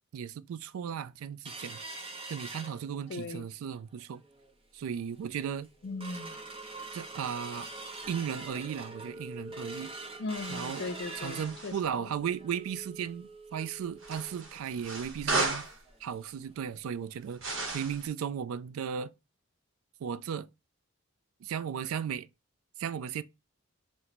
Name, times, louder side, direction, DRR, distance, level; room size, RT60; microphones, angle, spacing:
voice 1, 0.1-1.8 2.3-4.2 4.7-5.7 6.9-7.7 8.1-9.9 10.5-10.8 11.1-15.7 16.0-17.4 17.7-19.1 20.0-20.5 21.4-22.3 22.8-23.2, right 8 dB, 75° right, 0.3 m, -36 dB
sound 1, 1.4-3.3 3.7-3.8 4.2-4.5 5.0-5.1 5.4-16.0 16.3-16.4 16.7-16.9 17.4-17.5, right 2 dB, 25° right, 0.7 m, -44 dB
voice 2, 3.1-3.5 5.8-6.4 10.2-11.7, left 3 dB, 50° left, 0.4 m, -38 dB
sound 2, 10.3-11.8 14.0-15.8 17.4-18.1, right 3 dB, 60° right, 0.9 m, -35 dB
4.3 x 2.1 x 3.9 m
head